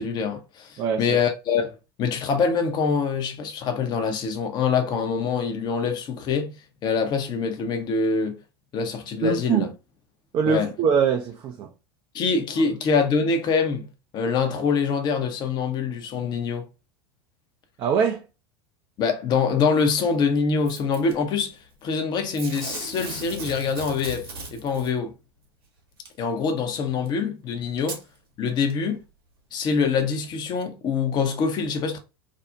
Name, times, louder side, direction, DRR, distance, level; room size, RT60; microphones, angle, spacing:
voice 1, 0.0-1.7 2.0-6.5 6.8-8.4 8.7-9.7 10.5-10.7 12.1-13.9 14.1-16.7 19.0-25.1 26.2-28.0 28.4-29.0 29.5-32.0, left 5 dB, 35° left, 0.6 m, -24 dB
voice 2, 9.2-9.7 10.3-11.7 17.8-18.2, right 6 dB, 35° right, 0.3 m, -23 dB
Packing tape duct tape / Tearing, 20.7-21.1 22.3-24.9 26.1-26.2 27.1-27.2 27.8-28.0 28.7-28.8, right 3 dB, 75° right, 0.8 m, -37 dB
2.5 x 2.0 x 2.6 m
hypercardioid pair, 85°, 12 cm